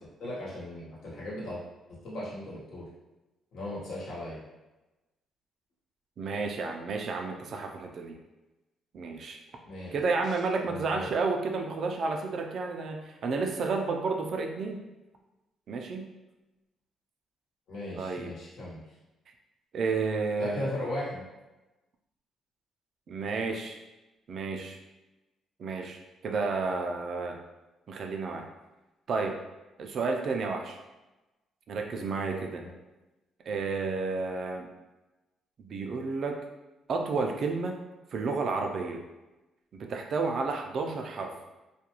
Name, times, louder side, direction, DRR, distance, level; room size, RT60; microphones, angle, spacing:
voice 1, 0.2-1.6 1.9-2.9 3.5-4.4 9.6-11.1 17.7-18.8 20.4-21.3 32.6-32.7, left 1 dB, 75° left, -7 dB, 1.1 m, -37 dB
voice 2, 6.2-8.2 8.9-9.4 9.9-14.8 15.7-16.1 17.9-18.3 19.7-20.7 23.1-23.8 24.3-24.8 25.6-27.4 27.9-28.5 29.1-29.4 29.8-30.8 31.7-32.6 33.5-34.7 35.6-36.4 36.9-37.8 38.1-39.0 39.7-41.3, right 4 dB, 60° right, 3 dB, 0.4 m, -31 dB
2.4 x 2.2 x 2.9 m, 1.1 s
cardioid pair, 90°, 0 cm